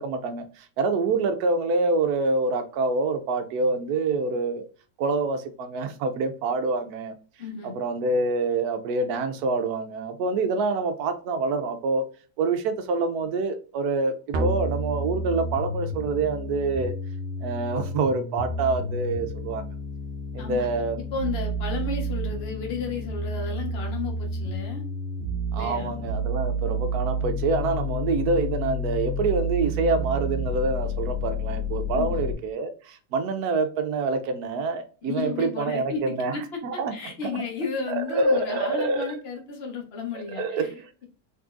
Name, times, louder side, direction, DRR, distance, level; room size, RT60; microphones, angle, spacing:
voice 1, 0.0-4.6 5.0-7.2 7.6-12.0 12.4-16.9 17.4-19.6 20.3-21.0 25.5-37.4 37.9-39.1 40.1-40.9, right 3 dB, 70° right, 0.9 m, -26 dB
voice 2, 7.4-7.7 20.4-20.7 21.0-24.8 25.6-25.9 31.9-32.2 35.0-36.4 36.7-40.7, left 5 dB, 85° left, 0.5 m, -33 dB
sound 1, 14.3-32.3, equal, 90° right, 0.6 m, -30 dB
3.7 x 3.1 x 2.3 m
omnidirectional pair, 2.0 m